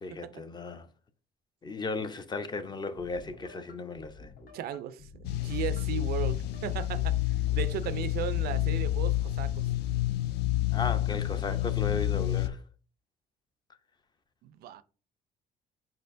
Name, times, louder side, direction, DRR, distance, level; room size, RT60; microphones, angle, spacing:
voice 1, 0.0-0.9 1.6-4.3 10.7-12.6, left 3 dB, 25° left, 0.5 m, -36 dB
sound 1, 3.0-8.2, left 3 dB, 55° left, 1.0 m, -52 dB
voice 2, 4.5-7.2 7.5-9.7 14.4-14.8, right 11 dB, 65° right, 0.4 m, -36 dB
sound 2, 5.2-12.5, left 14 dB, 75° left, 0.4 m, -29 dB
4.8 x 4.3 x 2.5 m
cardioid pair, 110°, 17 cm